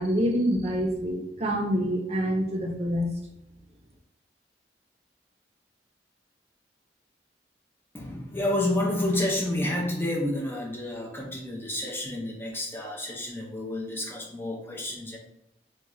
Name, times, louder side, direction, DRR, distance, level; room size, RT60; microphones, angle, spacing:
voice 1, 0.0-3.1, equal, 35° right, 0 dB, 0.6 m, -26 dB
voice 2, 7.9-15.2, left 1 dB, 15° left, -1 dB, 0.4 m, -29 dB
3.0 x 2.3 x 3.6 m, 0.82 s
head